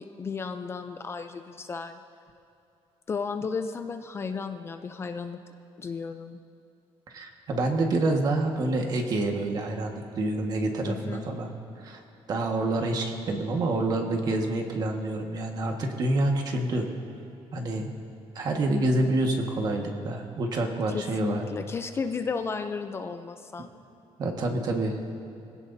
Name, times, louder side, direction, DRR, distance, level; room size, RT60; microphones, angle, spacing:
voice 1, 0.0-2.0 3.1-5.4 5.8-6.4 10.8-11.2 20.9-23.7, left 5 dB, 25° left, 7 dB, 0.5 m, -34 dB
voice 2, 7.1-11.5 11.8-12.0 12.3-16.9 17.5-17.9 18.3-21.4 24.2-25.0, right 2 dB, 40° right, 2 dB, 1.6 m, -27 dB
24.0 x 17.0 x 2.7 m, 2.9 s
cardioid pair, 165°, 10 cm